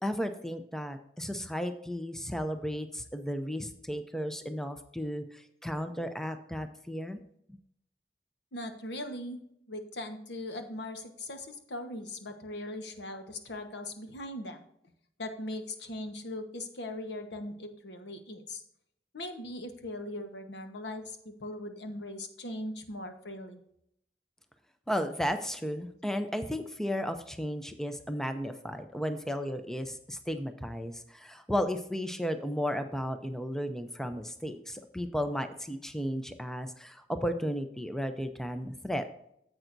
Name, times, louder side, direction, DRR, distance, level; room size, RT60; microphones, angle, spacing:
voice 1, 0.0-7.2 24.9-39.0, equal, 5° left, 8 dB, 0.5 m, -34 dB
voice 2, 8.5-9.4 9.7-14.6 15.2-18.6 19.1-23.6, left 1 dB, 80° left, 6 dB, 1.2 m, -40 dB
10.5 x 7.8 x 2.6 m, 0.74 s
head